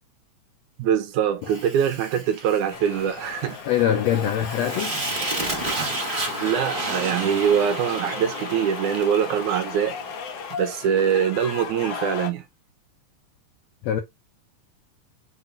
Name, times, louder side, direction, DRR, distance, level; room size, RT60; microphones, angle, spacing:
voice 1, 0.8-3.6 6.4-10.0 10.6-12.4, right 8 dB, 75° right, 2.2 m, -23 dB
Fire, 1.4-10.7, right 2 dB, 30° right, 0.9 m, -33 dB
sound 1, 2.7-12.3, left 6 dB, 60° left, 1.8 m, -35 dB
voice 2, 3.7-5.0 13.8-14.0, left 10 dB, 80° left, 1.5 m, -23 dB
sound 2, 4.6-8.3, right 5 dB, 60° right, 0.9 m, -38 dB
5.8 x 3.6 x 2.5 m
omnidirectional pair, 3.7 m